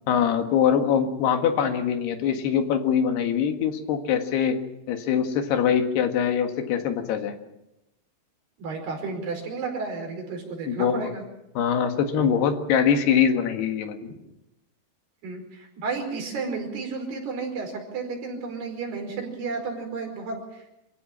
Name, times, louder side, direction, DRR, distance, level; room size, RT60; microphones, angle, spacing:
voice 1, 0.1-4.6 4.9-7.4 10.7-11.1 11.6-14.0, left 8 dB, 90° left, 6 dB, 3.8 m, -23 dB
voice 2, 8.6-11.2 15.2-20.7, right 4 dB, 85° right, 2 dB, 7.1 m, -32 dB
27.0 x 16.0 x 7.4 m, 0.89 s
omnidirectional pair, 4.5 m